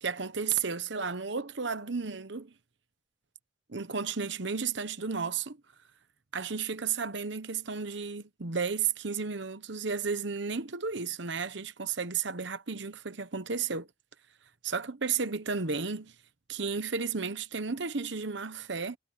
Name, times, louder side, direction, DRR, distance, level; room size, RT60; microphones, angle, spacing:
voice 1, 0.0-2.5 3.7-5.6 6.3-13.9 14.6-16.1 16.5-19.0, right 5 dB, 65° right, 1.1 m, -33 dB
head